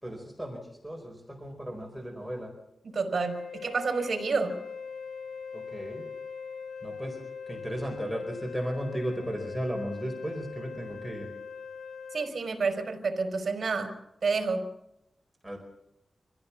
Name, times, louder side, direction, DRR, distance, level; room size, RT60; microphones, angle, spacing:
voice 1, 0.0-2.5 5.5-6.0 6.8-7.2 7.5-11.3 15.4-15.6, equal, ahead, 0 dB, 4.6 m, -35 dB
voice 2, 2.8-4.6 12.1-14.0 14.2-14.7, right 4 dB, 55° right, 5 dB, 4.6 m, -29 dB
Wind instrument woodwind instrument, 3.2-12.3, left 5 dB, 80° left, 1.8 m, -41 dB
25.5 x 16.0 x 7.2 m, 0.85 s
wide cardioid pair, 160°, 0 cm